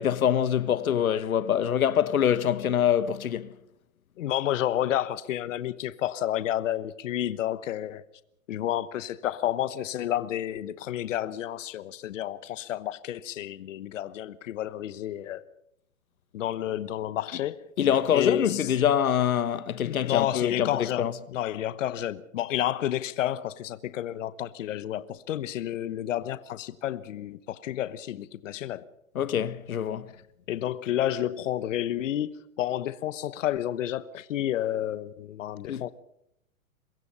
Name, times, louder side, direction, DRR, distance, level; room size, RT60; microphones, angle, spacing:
voice 1, 0.0-3.5 17.8-21.1 29.1-30.1 35.7-35.8, left 9 dB, 90° left, 1.3 m, -25 dB
voice 2, 4.2-8.0 8.5-15.4 16.3-17.7 18.1-18.7 19.8-28.9 30.5-32.3 32.6-35.9, left 12 dB, 65° left, 1.1 m, -30 dB
24.0 x 21.5 x 5.6 m
hypercardioid pair, 145°, 41 cm